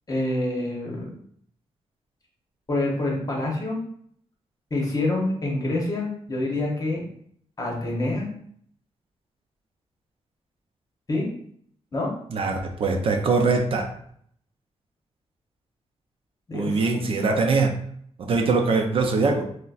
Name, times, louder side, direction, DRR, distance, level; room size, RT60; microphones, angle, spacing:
voice 1, 0.1-1.1 2.7-3.8 4.7-7.1 7.6-8.3 11.1-11.3 11.9-12.1 16.5-17.5, left 2 dB, 30° left, -2 dB, 0.9 m, -27 dB
voice 2, 12.3-13.9 16.5-17.8 18.2-19.4, right 4 dB, 55° right, 3 dB, 0.4 m, -22 dB
3.8 x 2.1 x 2.4 m, 0.63 s
wide cardioid pair, 145°, 11 cm